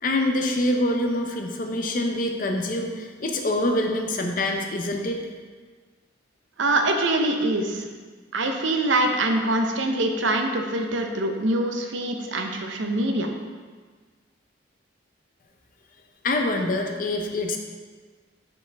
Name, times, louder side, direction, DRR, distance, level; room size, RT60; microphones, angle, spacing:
voice 1, 0.0-5.2 16.2-17.6, left 1 dB, 45° left, 3 dB, 0.6 m, -25 dB
voice 2, 6.6-7.9 8.3-13.3, right 1 dB, 80° right, 4 dB, 0.7 m, -24 dB
6.7 x 5.2 x 3.4 m, 1.5 s
head